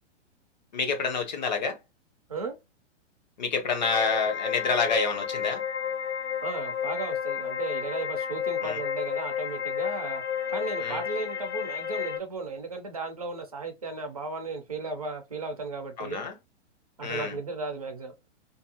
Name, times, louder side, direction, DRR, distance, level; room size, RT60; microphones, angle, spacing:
voice 1, 0.7-1.8 3.4-5.6 8.6-8.8 10.8-11.0 16.0-16.3 17.0-17.3, left 5 dB, 40° left, 0.5 m, -28 dB
sound 1, 3.8-12.2, left 8 dB, 65° left, 0.9 m, -31 dB
voice 2, 6.4-10.2 10.5-16.2 17.0-18.1, right 3 dB, 35° right, 0.4 m, -35 dB
2.6 x 2.3 x 2.6 m
hypercardioid pair, 180°, 36 cm